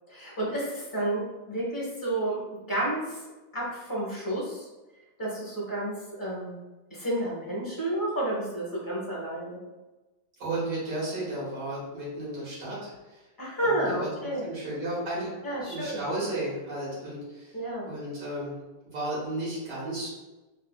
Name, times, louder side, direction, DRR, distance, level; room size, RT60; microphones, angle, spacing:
voice 1, 0.1-1.2 1.5-3.2 3.5-4.7 5.2-6.5 6.9-9.6 13.4-14.4 15.4-16.0 17.5-17.9, right 1 dB, 15° left, -6 dB, 0.8 m, -31 dB
voice 2, 10.4-13.2 13.6-14.1 14.4-15.3 15.7-18.5 18.9-20.1, right 1 dB, 75° right, -7 dB, 2.1 m, -34 dB
4.1 x 2.6 x 2.2 m, 1.1 s
omnidirectional pair, 1.9 m